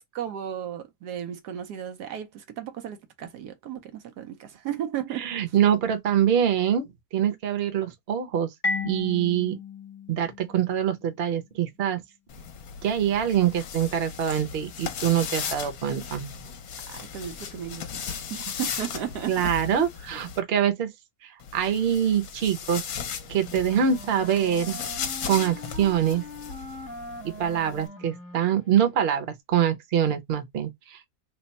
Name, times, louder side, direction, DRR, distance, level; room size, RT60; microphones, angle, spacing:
voice 1, 0.0-5.3 16.9-19.5, right 10 dB, 80° right, 1.2 m, -35 dB
voice 2, 5.2-6.9 7.1-8.5 8.8-9.6 10.1-12.0 12.8-16.3 19.3-20.9 21.2-22.8 23.3-24.8 25.2-26.2 27.2-31.0, right 9 dB, 45° right, 0.9 m, -24 dB
Marimba xylophone, 8.6-11.3, left 3 dB, 40° left, 0.5 m, -34 dB
sound 1, 12.3-20.4 21.4-27.9, left 7 dB, 65° left, 1.1 m, -37 dB
Wind instrument woodwind instrument, 23.1-29.2, equal, 15° right, 0.4 m, -42 dB
3.3 x 2.0 x 4.0 m
omnidirectional pair, 1.7 m